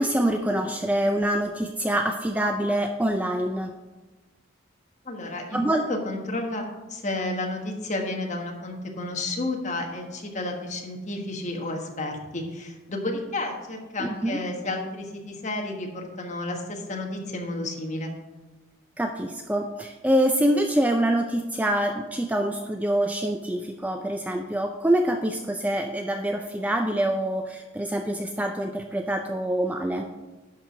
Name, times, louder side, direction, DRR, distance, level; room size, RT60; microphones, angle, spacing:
voice 1, 0.0-3.8 5.5-5.8 14.0-14.4 19.0-30.1, right 1 dB, 5° right, 4 dB, 0.3 m, -25 dB
voice 2, 5.0-18.1, left 2 dB, 35° left, 1 dB, 1.3 m, -31 dB
11.0 x 4.7 x 5.7 m, 1.2 s
head